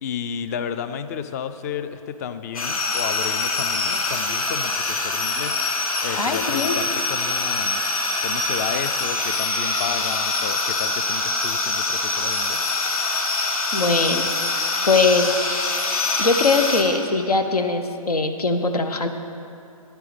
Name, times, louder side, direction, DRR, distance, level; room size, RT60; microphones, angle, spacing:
voice 1, 0.0-5.6 6.0-7.8 8.2-12.6, left 7 dB, 25° left, 11 dB, 0.4 m, -32 dB
sound 1, 2.5-16.8, left 3 dB, 70° left, 1.6 m, -24 dB
voice 2, 6.1-6.8 13.7-14.3 14.9-15.4 16.2-19.1, left 3 dB, 85° left, 7 dB, 1.0 m, -21 dB
11.5 x 9.1 x 5.1 m, 2.6 s
hypercardioid pair, 140°, 19 cm